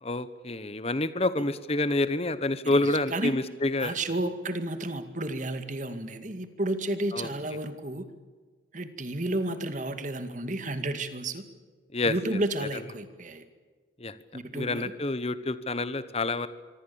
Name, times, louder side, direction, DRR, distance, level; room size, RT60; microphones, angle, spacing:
voice 1, 0.0-3.9 7.1-7.3 11.9-12.1 14.0-14.2 14.5-16.5, left 2 dB, 35° left, 14 dB, 1.1 m, -28 dB
voice 2, 2.6-3.3 3.8-8.0 8.7-11.4 12.1-13.5 14.3-14.9, right 1 dB, 40° right, 9 dB, 2.2 m, -32 dB
25.5 x 25.0 x 7.1 m, 1.5 s
head